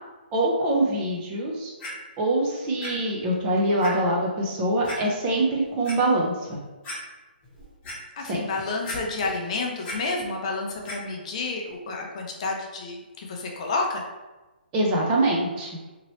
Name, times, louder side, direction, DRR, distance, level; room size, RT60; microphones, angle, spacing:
voice 1, 0.3-1.7 2.2-6.6 8.3-8.4 14.7-15.7, right 1 dB, 20° right, -2 dB, 0.5 m, -24 dB
Clock, 1.8-1.9 2.8-2.9 3.3-3.4 3.8-3.9 4.8-5.0 5.6-6.0 6.5-6.6 6.8-7.0 7.4-8.0 8.8-9.4 9.6-10.0 10.8-11.0 11.7-11.8, left 1 dB, 15° left, 1.0 m, -36 dB
voice 2, 8.2-14.0, left 3 dB, 40° left, 1 dB, 0.5 m, -30 dB
2.9 x 2.8 x 3.0 m, 1.2 s
hypercardioid pair, 160°, 6 cm